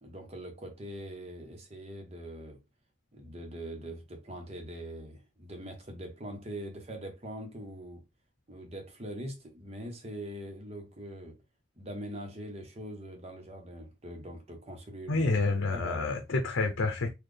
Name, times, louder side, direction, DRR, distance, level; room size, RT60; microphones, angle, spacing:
voice 1, 0.0-2.6 3.1-8.0 8.5-11.4 11.8-15.3 15.7-16.1, right 1 dB, 30° right, 0.9 m, -42 dB
voice 2, 15.1-17.1, left 3 dB, 85° left, 0.6 m, -28 dB
4.1 x 2.3 x 3.3 m
head